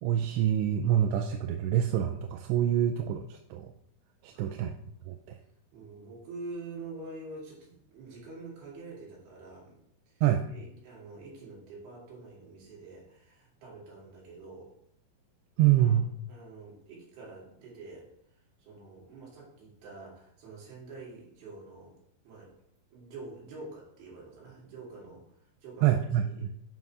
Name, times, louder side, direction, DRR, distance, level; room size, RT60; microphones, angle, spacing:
voice 1, 0.0-3.7 4.2-4.7 5.1-5.4 10.2-10.5 15.6-16.1 25.8-26.5, right 11 dB, 90° right, 5 dB, 2.7 m, -26 dB
voice 2, 4.3-4.7 5.7-9.8 10.1-10.2 10.5-14.7 15.7-16.0 16.3-18.0 18.6-22.0 22.2-22.5 22.9-25.2 25.6-26.5, right 3 dB, 70° right, -5 dB, 4.5 m, -46 dB
8.0 x 5.4 x 4.8 m, 0.73 s
omnidirectional pair, 4.8 m